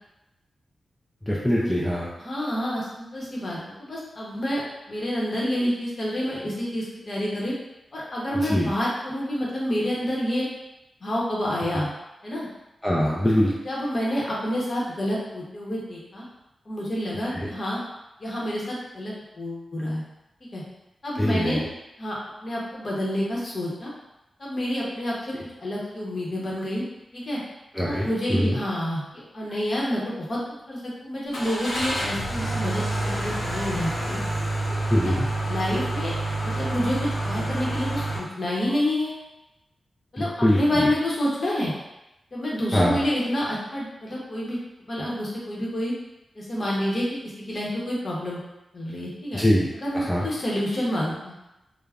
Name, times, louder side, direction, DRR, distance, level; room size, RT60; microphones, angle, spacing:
voice 1, 1.3-2.1 8.5-8.7 12.8-13.5 21.2-21.6 27.8-28.6 34.9-35.3 40.4-40.9 42.7-43.0 49.3-49.7 49.9-50.2, equal, 5° left, -5 dB, 0.3 m, -22 dB
voice 2, 2.2-4.6 4.9-7.5 7.9-10.5 11.0-11.9 12.2-12.5 13.6-16.2 16.7-17.8 18.2-20.0 20.5-20.6 21.0-21.6 22.0-23.9 24.4-25.3 25.6-26.8 27.1-27.4 27.8-30.4 30.7-34.2 35.0-35.1 35.5-36.2 36.4-39.1 40.1-41.7 42.3-44.6 44.9-45.9 46.4-47.2 47.4-48.4 48.7-49.4 49.7-51.4, equal, 40° left, -5 dB, 0.7 m, -28 dB
Car / Engine starting, 31.3-38.2, right 1 dB, 85° left, 1.1 m, -28 dB
2.3 x 2.0 x 3.4 m, 0.94 s
wide cardioid pair, 155°, 0 cm